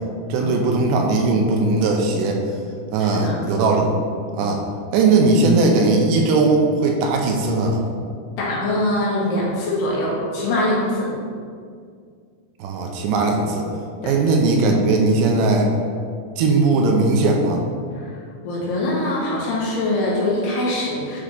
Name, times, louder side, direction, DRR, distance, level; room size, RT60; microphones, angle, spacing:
voice 1, 0.3-2.4 2.9-3.9 4.3-4.6 4.9-7.9 12.6-13.7 14.0-15.7 16.4-17.6, right 3 dB, 85° right, 1 dB, 2.7 m, -18 dB
voice 2, 3.0-3.4 8.4-11.1 14.0-14.2 17.9-18.1 18.4-21.2, left 1 dB, 70° left, -6 dB, 3.3 m, -23 dB
10.0 x 3.7 x 3.7 m, 2.2 s
omnidirectional pair, 5.0 m